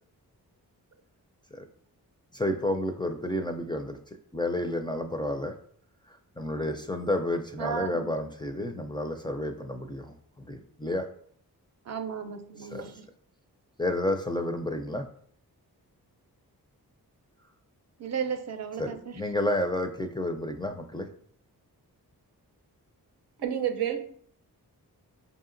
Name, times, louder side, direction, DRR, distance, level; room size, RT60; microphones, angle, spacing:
voice 1, 2.3-4.0 4.3-5.6 6.4-10.1 10.5-11.1 12.6-12.8 13.8-15.1 18.8-21.1, left 1 dB, 15° left, 5 dB, 0.4 m, -30 dB
voice 2, 7.6-8.2 11.9-13.1 18.0-19.2, right 7 dB, 45° right, 7 dB, 0.6 m, -34 dB
voice 3, 23.4-24.0, right 10 dB, 85° right, 4 dB, 0.7 m, -28 dB
4.8 x 2.8 x 2.5 m, 0.62 s
cardioid pair, 55°, 38 cm